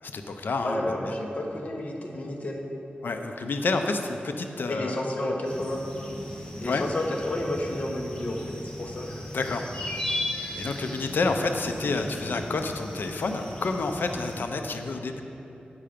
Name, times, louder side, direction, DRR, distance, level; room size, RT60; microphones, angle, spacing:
voice 1, 0.0-1.1 3.0-5.0 6.6-6.8 9.3-9.6 10.1-10.2 10.6-15.2, left 3 dB, 75° left, 5 dB, 0.6 m, -29 dB
voice 2, 0.6-2.6 4.7-5.8 6.6-9.2, left 1 dB, 40° left, 0 dB, 1.2 m, -31 dB
sound 1, 5.4-14.4, left 1 dB, 25° left, 1.2 m, -37 dB
8.7 x 6.8 x 5.1 m, 2.9 s
wide cardioid pair, 110°, 3 cm